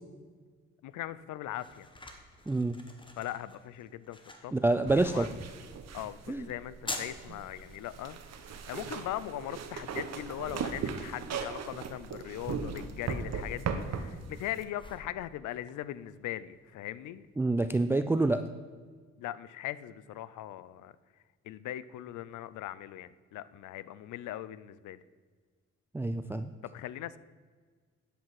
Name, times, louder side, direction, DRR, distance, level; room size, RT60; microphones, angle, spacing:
voice 1, 0.8-1.9 3.2-4.5 4.9-5.6 5.9-17.3 19.2-21.0 21.4-25.0 26.6-27.2, left 13 dB, 80° left, 17 dB, 0.5 m, -40 dB
sound 1, 0.9-18.4, left 2 dB, 15° left, 1.4 m, -50 dB
voice 2, 2.5-2.8 4.5-5.3 6.3-6.4 17.4-18.4 25.9-26.5, right 2 dB, 10° right, 9 dB, 0.4 m, -27 dB
sound 2, 4.9-14.6, right 6 dB, 60° right, 1.0 m, -38 dB
10.0 x 7.7 x 4.8 m, 1.6 s
cardioid pair, 90°, 30 cm